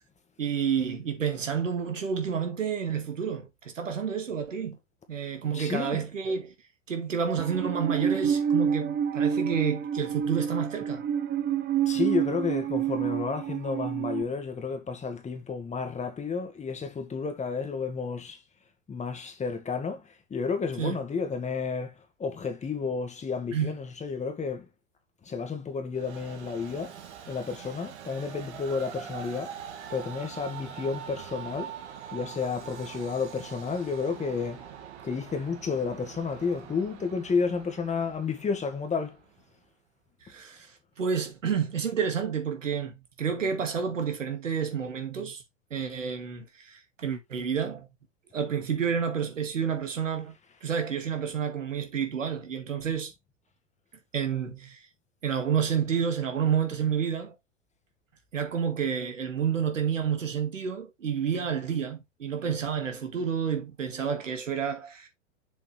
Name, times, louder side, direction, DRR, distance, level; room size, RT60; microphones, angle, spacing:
voice 1, 0.4-4.8 5.1-6.5 6.9-11.0 20.8-21.0 23.5-23.8 40.3-40.7 41.0-45.4 45.7-47.9 48.3-50.4 50.6-53.1 54.1-54.9 55.2-57.4 58.3-65.1, right 7 dB, 90° right, 2.3 m, -29 dB
voice 2, 5.5-6.0 11.9-18.4 18.9-21.9 22.2-24.7 25.2-27.0 27.3-29.6 29.9-31.7 32.1-34.6 35.0-39.2, left 5 dB, 20° left, 2.0 m, -31 dB
Musical instrument, 7.4-14.2, right 8 dB, 30° right, 1.2 m, -28 dB
Train, 25.9-39.4, right 8 dB, 65° right, 2.2 m, -43 dB
7.0 x 5.4 x 3.4 m
hypercardioid pair, 105°, 37 cm